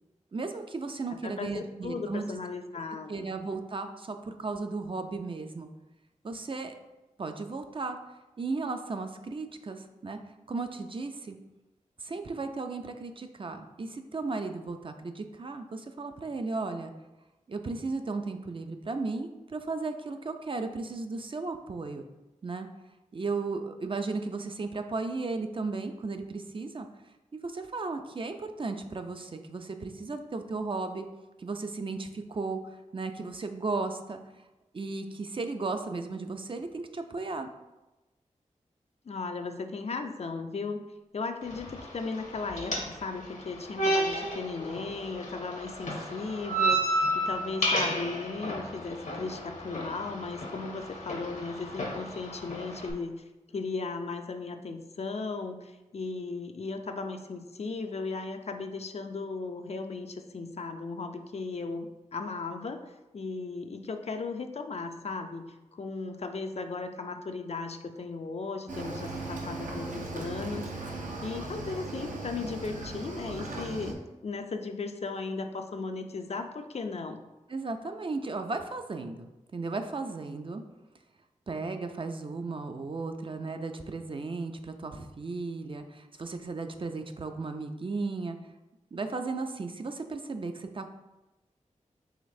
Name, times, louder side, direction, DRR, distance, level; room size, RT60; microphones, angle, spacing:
voice 1, 0.3-2.3 3.1-5.7 6.2-6.7 7.2-8.0 8.4-10.2 10.5-11.4 12.0-16.9 17.5-22.0 22.4-22.7 23.1-26.9 27.4-31.1 31.4-34.2 34.7-37.5 77.5-80.6 81.5-88.4 88.9-90.9, right 3 dB, 40° right, 6 dB, 0.4 m, -35 dB
voice 2, 1.2-3.1 39.1-40.8 41.1-53.2 53.5-65.4 65.7-70.9 71.2-77.2, left 4 dB, 55° left, 6 dB, 0.4 m, -36 dB
sound 1, 41.4-52.9, right 1 dB, 70° left, 0.9 m, -32 dB
Cricket / Waves surf, 68.7-73.9, right 2 dB, 75° right, 0.7 m, -38 dB
5.0 x 3.2 x 2.6 m, 1.0 s
cardioid pair, 50°, 13 cm